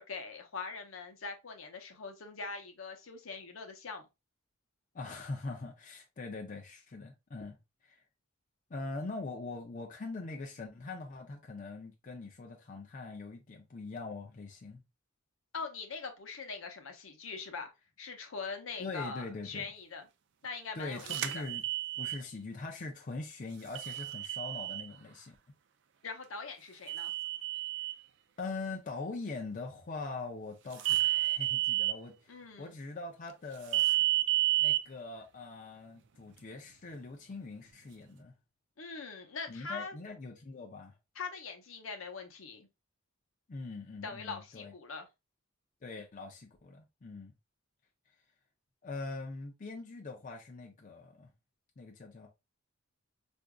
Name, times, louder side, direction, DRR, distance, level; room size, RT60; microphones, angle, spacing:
voice 1, 0.0-4.1 15.5-17.7 18.0-20.1 20.4-21.5 26.0-27.1 32.3-32.7 38.8-40.0 41.1-42.7 44.0-45.1, left 4 dB, 70° left, 0.7 m, -42 dB
voice 2, 4.9-8.0 8.7-14.8 18.8-19.7 20.8-21.6 22.0-25.4 28.4-33.8 34.6-38.3 39.5-41.0 43.5-44.7 45.8-47.3 48.8-51.3 51.8-52.3, left 3 dB, 40° left, 0.5 m, -42 dB
sound 1, 21.1-22.2 23.8-24.9 26.9-27.9 30.8-31.9 33.7-34.8, right 15 dB, 60° right, 0.4 m, -30 dB
4.7 x 2.6 x 2.2 m
head